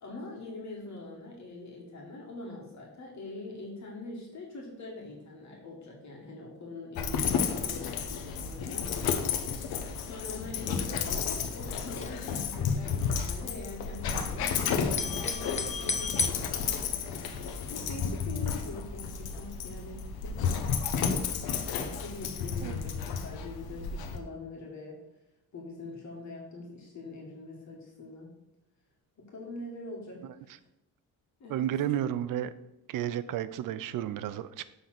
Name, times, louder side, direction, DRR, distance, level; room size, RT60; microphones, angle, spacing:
voice 1, 0.0-8.9 10.0-20.4 21.8-25.0 25.5-28.3 29.2-30.3 31.4-32.0, left 2 dB, 50° left, -2 dB, 2.0 m, -43 dB
Dog, 7.0-24.2, left 6 dB, 90° left, 0.9 m, -32 dB
Foley Bells Charity, 10.0-10.3 10.6-10.7 10.9-12.5 12.9-14.5 14.8-16.3, left 3 dB, 20° left, 0.6 m, -34 dB
voice 2, 31.5-32.5 32.9-34.7, right 11 dB, 65° right, 15 dB, 0.5 m, -32 dB
7.1 x 3.8 x 5.9 m, 0.90 s
cardioid pair, 115°, 36 cm